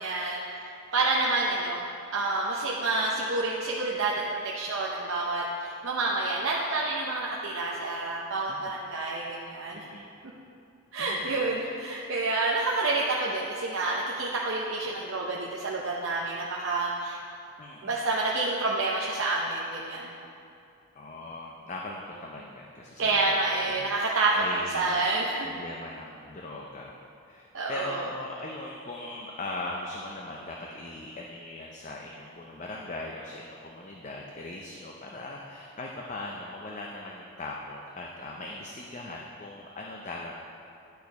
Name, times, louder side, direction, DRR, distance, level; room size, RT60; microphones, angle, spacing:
voice 1, 0.0-1.8 2.1-9.9 10.9-17.2 17.8-20.1 23.0-25.5 27.5-28.1, right 2 dB, 65° right, -4 dB, 0.7 m, -28 dB
voice 2, 8.5-8.8 9.7-10.1 11.0-11.4 17.6-18.0 20.9-25.0 25.4-27.0 27.3-40.4, left 2 dB, 35° left, -1 dB, 0.5 m, -40 dB
10.5 x 4.5 x 5.1 m, 2.6 s
head